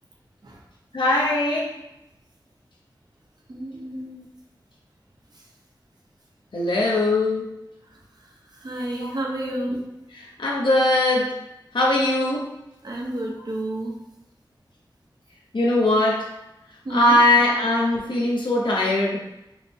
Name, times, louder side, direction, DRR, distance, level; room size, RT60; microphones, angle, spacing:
voice 1, 0.9-1.8 3.9-4.3 6.5-7.5 9.0-9.1 9.4-9.7 10.4-11.4 11.7-12.5 15.5-16.3 16.9-19.2, left 1 dB, 75° left, -4 dB, 0.8 m, -21 dB
voice 2, 3.5-4.0 8.5-9.9 12.8-14.0 16.8-17.2, right 1 dB, 55° right, -2 dB, 0.9 m, -30 dB
4.6 x 2.2 x 3.4 m, 0.90 s
wide cardioid pair, 75°, 8 cm